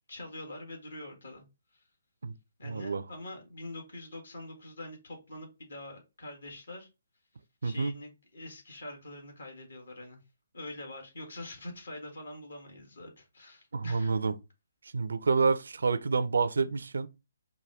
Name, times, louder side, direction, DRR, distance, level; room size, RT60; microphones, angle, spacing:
voice 1, 0.1-1.4 2.6-6.9 7.6-10.2 10.5-14.1, left 1 dB, 70° left, 1.7 m, -44 dB
voice 2, 2.6-3.0 7.6-8.0 13.7-14.4 14.9-17.1, right 4 dB, 70° right, 0.4 m, -28 dB
4.9 x 2.2 x 3.4 m
figure-of-eight pair, 135°, 0 cm